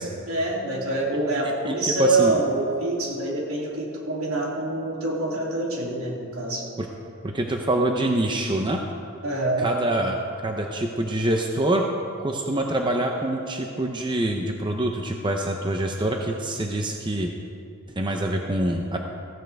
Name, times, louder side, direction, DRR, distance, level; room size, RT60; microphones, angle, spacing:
voice 1, 0.3-6.7 9.2-9.7, right 2 dB, 85° right, -3 dB, 2.9 m, -26 dB
voice 2, 1.7-2.4 6.8-6.9 7.2-8.8 9.6-10.2 10.4-11.9 12.2-17.3 18.0-19.0, right 1 dB, 20° right, 2 dB, 0.7 m, -25 dB
15.5 x 15.5 x 3.5 m, 2.6 s
head